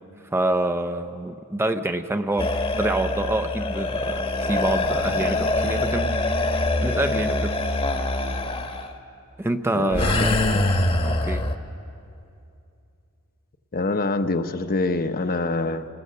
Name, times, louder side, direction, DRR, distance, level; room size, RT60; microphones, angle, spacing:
voice 1, 0.3-6.1 6.8-7.6 9.4-10.4 11.0-11.5, right 1 dB, 10° right, 8 dB, 0.5 m, -26 dB
sound 1, 2.4-8.9 9.9-11.5, left 2 dB, 25° left, 1.1 m, -24 dB
voice 2, 9.7-10.6 13.7-15.9, left 3 dB, 40° left, 9 dB, 0.8 m, -25 dB
26.5 x 21.0 x 6.7 m, 2.6 s
head